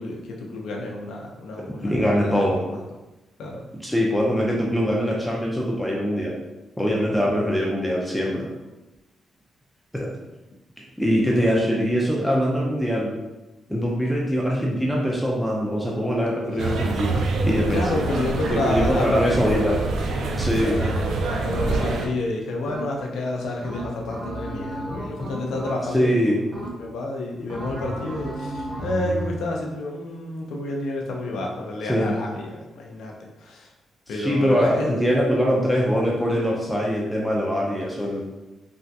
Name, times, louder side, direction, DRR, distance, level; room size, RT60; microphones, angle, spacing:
voice 1, 0.0-2.3 2.7-2.8 3.4-3.6 11.3-11.6 17.7-19.8 20.1-33.7 34.1-35.1, left 2 dB, 85° left, 0 dB, 0.5 m, -30 dB
voice 2, 1.6-2.6 3.8-6.3 6.8-8.5 9.9-10.1 11.0-13.1 13.7-17.2 17.4-18.0 18.5-19.8 20.4-20.8 25.9-26.4 31.9-32.1 34.2-38.3, equal, ahead, -3 dB, 0.3 m, -23 dB
sound 1, 16.6-22.1, right 3 dB, 70° right, 0.4 m, -25 dB
sound 2, 21.7-22.2 22.7-23.2 23.6-26.1 26.5-27.1 27.5-29.4, right 1 dB, 40° right, 0.7 m, -33 dB
3.3 x 2.3 x 2.6 m, 1.0 s
wide cardioid pair, 180°, 0 cm